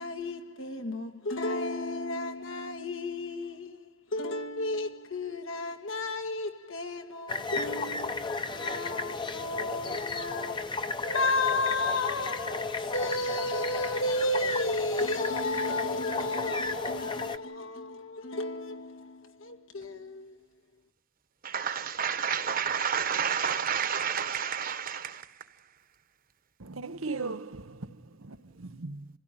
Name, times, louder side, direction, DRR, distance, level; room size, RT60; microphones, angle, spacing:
voice 1, 0.0-20.4, left 2 dB, 75° left, 2.0 m, -33 dB
sound 1, 7.3-17.4, left 3 dB, 25° left, 0.9 m, -34 dB
voice 2, 21.4-25.2, right 7 dB, 45° right, 1.3 m, -30 dB
voice 3, 26.6-29.1, right 3 dB, 90° right, 1.1 m, -38 dB
27.0 x 16.5 x 9.2 m
head